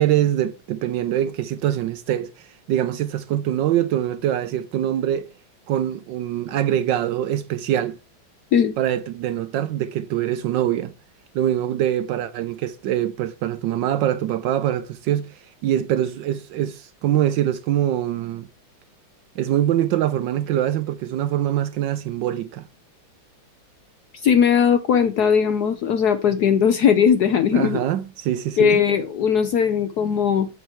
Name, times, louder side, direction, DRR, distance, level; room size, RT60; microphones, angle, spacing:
voice 1, 0.0-5.3 5.7-8.0 8.8-10.9 11.3-18.5 19.4-22.7 27.5-28.8, right 11 dB, 75° right, 1.1 m, -24 dB
voice 2, 24.2-27.8 28.6-30.5, left 7 dB, 65° left, 1.0 m, -18 dB
8.1 x 5.4 x 4.4 m
omnidirectional pair, 2.3 m